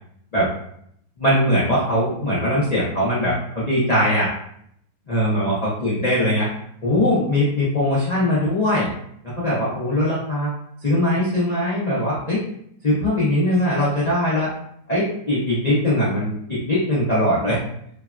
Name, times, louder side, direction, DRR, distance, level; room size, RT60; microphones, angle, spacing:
voice 1, 1.2-4.3 5.1-6.5 6.8-8.9 9.4-10.5 10.8-12.4 12.8-14.5 14.9-17.6, left 1 dB, 80° left, -9 dB, 0.3 m, -21 dB
3.2 x 2.1 x 2.4 m, 0.69 s
omnidirectional pair, 2.0 m